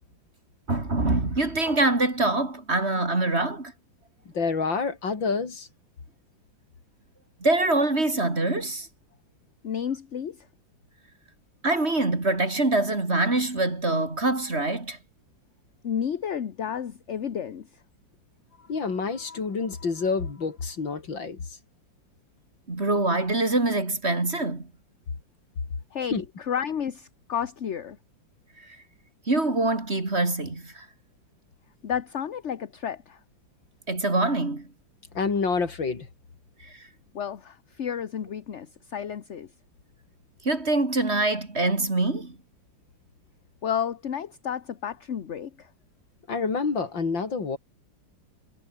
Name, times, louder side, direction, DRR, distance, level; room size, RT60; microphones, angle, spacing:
voice 1, 0.7-3.7 7.4-8.9 11.6-15.0 22.7-24.7 29.3-30.9 33.9-34.7 40.4-42.4, right 2 dB, 30° right, 3.6 m, -24 dB
voice 2, 4.3-5.7 18.7-21.5 26.1-26.2 35.1-36.1 46.3-47.6, left 4 dB, 70° left, 3.9 m, -28 dB
voice 3, 9.6-10.5 15.8-17.8 25.9-28.0 31.8-33.2 37.1-39.5 43.6-45.7, left 8 dB, 45° left, 1.1 m, -31 dB
omnidirectional pair, 2.1 m